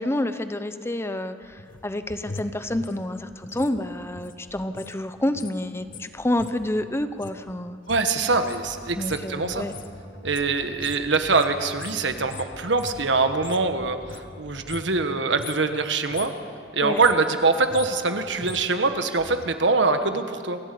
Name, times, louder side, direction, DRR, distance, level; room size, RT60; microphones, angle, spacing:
voice 1, 0.0-7.8 9.0-9.7 16.8-17.0, left 1 dB, 15° left, 10 dB, 0.8 m, -28 dB
sound 1, 1.4-5.0 5.2-13.7 14.0-15.1 15.3-15.7 16.0-16.4 16.8-19.5 19.8-19.9, left 4 dB, 50° left, 0.9 m, -42 dB
voice 2, 7.9-9.7 10.2-16.3 16.7-20.6, right 3 dB, 75° right, 8 dB, 1.4 m, -23 dB
sound 2, 8.2-15.1, equal, 75° left, 2.2 m, -44 dB
28.0 x 12.0 x 8.4 m, 2.3 s
head